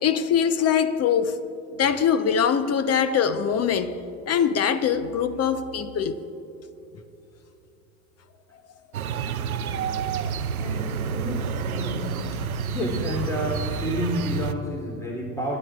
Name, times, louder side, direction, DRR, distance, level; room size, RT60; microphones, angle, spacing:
voice 1, 0.0-1.4 1.8-3.9 4.3-6.2, left 7 dB, 35° left, 11 dB, 0.9 m, -22 dB
sound 1, 8.9-14.5, right 6 dB, 85° right, 0.6 m, -29 dB
voice 2, 10.6-12.2 12.7-15.6, equal, 5° left, -1 dB, 3.2 m, -30 dB
28.0 x 11.5 x 2.4 m, 3.0 s
figure-of-eight pair, 70°, 42 cm